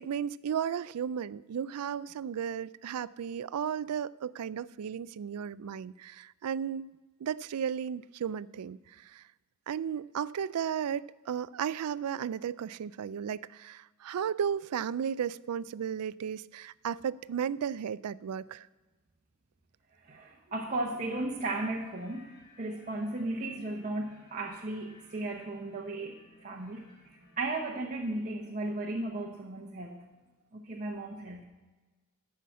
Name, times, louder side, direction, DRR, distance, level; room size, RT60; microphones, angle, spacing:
voice 1, 0.0-6.9 7.2-9.2 9.7-18.7, right 8 dB, 85° right, 19 dB, 0.4 m, -34 dB
voice 2, 19.9-26.8 27.4-30.0 30.5-31.4, right 2 dB, 35° right, -1 dB, 1.0 m, -35 dB
sound 1, 20.7-27.4, left 1 dB, 50° left, 3.3 m, -58 dB
13.5 x 5.8 x 7.5 m, 1.2 s
head